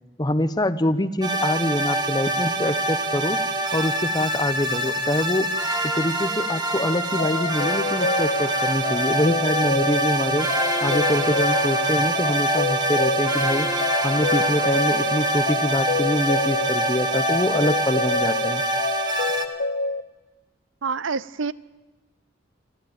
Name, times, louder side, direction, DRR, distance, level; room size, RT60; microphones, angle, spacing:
voice 1, 0.2-3.4 3.7-5.5 5.8-10.5 10.8-13.7 14.0-18.6, left 1 dB, 20° left, 12 dB, 0.9 m, -25 dB
sound 1, 1.2-19.5, right 1 dB, 20° right, 1.6 m, -25 dB
sound 2, 6.8-20.0, left 3 dB, 50° left, 0.9 m, -28 dB
voice 2, 20.8-21.5, right 5 dB, 75° right, 19 dB, 0.7 m, -27 dB
26.0 x 15.0 x 8.8 m, 1.1 s
head